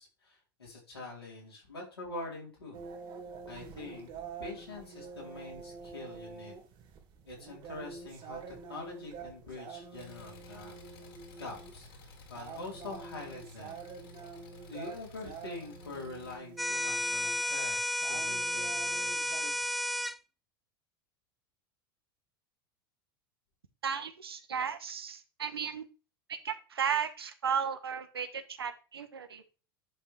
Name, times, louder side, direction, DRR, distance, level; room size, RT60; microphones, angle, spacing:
voice 1, 0.0-2.8 3.5-4.1 4.4-6.6 7.3-10.8 11.4-11.9 12.3-13.8 14.6-19.8, left 2 dB, 90° left, -3 dB, 4.3 m, -45 dB
sound 1, 2.7-19.4, right 5 dB, 45° right, 2.7 m, -47 dB
Engine, 9.9-16.3, left 3 dB, 70° left, 3.0 m, -53 dB
sound 2, 16.6-20.2, left 1 dB, ahead, 0.3 m, -32 dB
voice 2, 23.8-25.8 26.3-29.4, right 7 dB, 85° right, 10 dB, 1.1 m, -34 dB
10.5 x 5.7 x 3.5 m, 0.34 s
hypercardioid pair, 85°, 13 cm